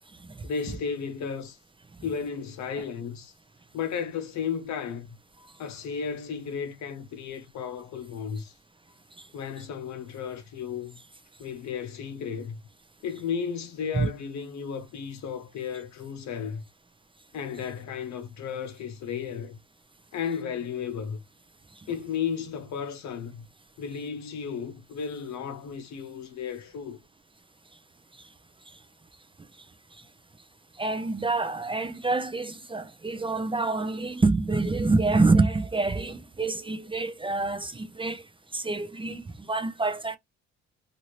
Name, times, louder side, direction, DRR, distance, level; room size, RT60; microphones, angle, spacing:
voice 1, 0.4-1.6 2.0-3.3 3.7-5.2 5.6-8.5 9.3-11.0 11.4-12.6 13.0-16.6 17.3-19.6 20.1-21.2 21.9-23.5 23.8-27.0, left 7 dB, 65° left, 0.8 m, -34 dB
voice 2, 30.8-38.3 38.5-40.2, right 3 dB, 15° right, 0.5 m, -26 dB
2.8 x 2.6 x 3.1 m
cardioid pair, 90°, 30 cm